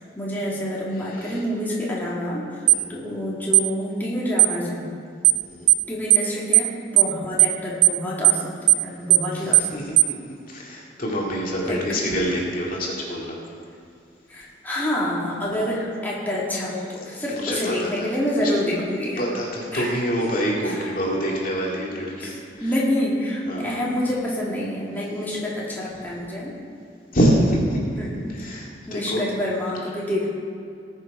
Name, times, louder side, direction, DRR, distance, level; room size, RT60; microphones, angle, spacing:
voice 1, 0.0-4.9 5.9-9.7 11.6-11.8 14.3-19.2 19.7-19.9 20.6-20.9 22.2-26.5 28.0-28.2 28.9-30.3, left 1 dB, 10° left, -6 dB, 2.3 m, -27 dB
sound 1, 2.7-2.8 3.5-3.7 4.4-4.6 5.2-5.4 5.7-5.8 6.1-6.3 6.5-6.7 7.0-7.1 7.4-7.6 7.8-8.0 8.2-8.4 8.7-8.8 9.1-9.3 9.5-9.7 10.0-10.1, right 17 dB, 70° right, 0.3 m, -15 dB
voice 2, 5.3-5.7 9.3-9.9 10.5-13.4 17.3-18.1 18.4-18.6 19.2-22.7 23.5-23.8 27.1-27.8 28.3-29.2, equal, 50° left, -3 dB, 2.3 m, -26 dB
19.5 x 6.7 x 4.9 m, 2.4 s
head